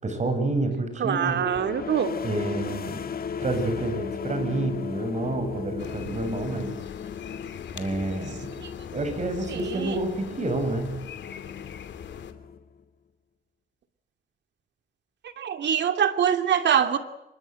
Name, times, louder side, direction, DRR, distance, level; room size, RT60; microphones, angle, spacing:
voice 1, 0.0-1.4 2.2-3.0 3.4-6.8 7.7-8.5 8.9-11.0, right 2 dB, 35° right, 8 dB, 7.6 m, -29 dB
voice 2, 1.0-2.1 8.6-8.7 9.5-10.0 15.4-17.0, right 8 dB, 65° right, 8 dB, 2.8 m, -24 dB
sound 1, 1.3-12.8, left 7 dB, 50° left, 2.2 m, -36 dB
sound 2, 5.8-12.3, left 8 dB, 65° left, 2.7 m, -42 dB
25.5 x 23.0 x 7.9 m, 0.91 s
cardioid pair, 90°, 20 cm